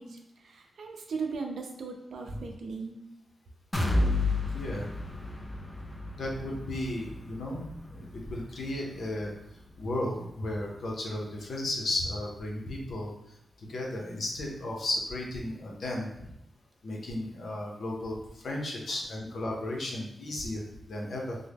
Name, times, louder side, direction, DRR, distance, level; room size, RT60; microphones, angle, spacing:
voice 1, 0.0-3.0 18.9-19.0, right 4 dB, 75° right, 2 dB, 0.5 m, -38 dB
sound 1, 3.7-11.5 11.9-12.0 12.4-12.5, left 2 dB, 20° left, 0.5 m, -33 dB
voice 2, 4.5-4.9 6.2-9.3 9.8-13.1 13.6-16.1 16.8-21.4, left 1 dB, 70° left, -1 dB, 0.7 m, -34 dB
3.5 x 2.1 x 3.4 m, 0.83 s
wide cardioid pair, 110°, 0 cm